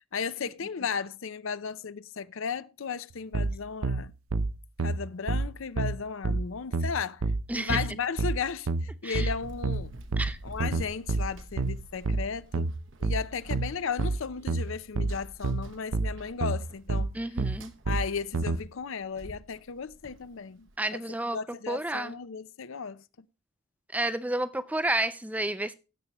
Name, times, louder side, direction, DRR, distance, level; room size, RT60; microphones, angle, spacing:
voice 1, 0.1-4.1 4.8-7.2 7.5-9.9 10.4-12.7 13.0-17.2 17.9-21.0 21.3-23.0, left 6 dB, 65° left, 0.5 m, -35 dB
sound 1, 3.3-18.6, right 3 dB, 80° right, 0.7 m, -29 dB
voice 2, 7.5-7.8 9.0-9.3 10.2-10.4 17.1-17.7 20.8-21.4 21.7-22.1 23.9-25.7, right 1 dB, 5° right, 0.4 m, -30 dB
Run, 9.4-20.8, right 1 dB, 60° right, 1.0 m, -50 dB
16.0 x 6.7 x 2.9 m
head